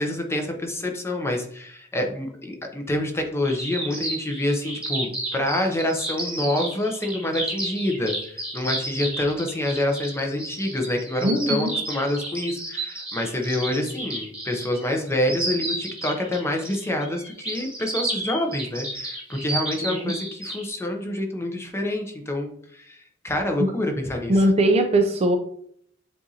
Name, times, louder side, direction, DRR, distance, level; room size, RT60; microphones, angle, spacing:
voice 1, 0.0-24.5, left 1 dB, 15° left, 3 dB, 0.7 m, -27 dB
sound 1, 3.5-20.7, right 2 dB, 5° right, 1.3 m, -32 dB
voice 2, 11.2-11.7 19.8-20.1 24.3-25.4, right 1 dB, 30° right, 5 dB, 0.4 m, -20 dB
7.6 x 2.5 x 2.8 m, 0.64 s
head